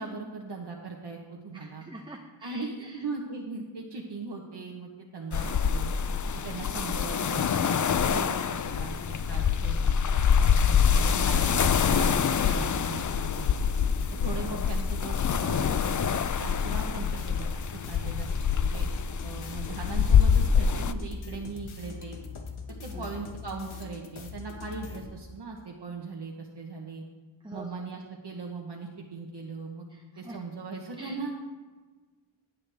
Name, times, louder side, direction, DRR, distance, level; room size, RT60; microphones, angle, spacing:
voice 1, 0.0-1.9 2.4-5.9 6.3-13.5 14.2-18.3 18.6-18.9 19.2-22.2 22.8-27.0 27.5-29.9 30.2-31.3, right 4 dB, 55° right, 0 dB, 1.1 m, -39 dB
voice 2, 1.5-3.0 22.9-23.1 27.4-27.7 30.2-30.4 31.0-31.1, right 1 dB, 10° right, 2 dB, 0.7 m, -44 dB
sound 1, 5.3-20.9, left 7 dB, 40° left, 0.4 m, -25 dB
sound 2, 10.6-25.1, left 4 dB, 90° left, 1.3 m, -42 dB
16.0 x 8.4 x 3.4 m, 1.3 s
wide cardioid pair, 105°, 47 cm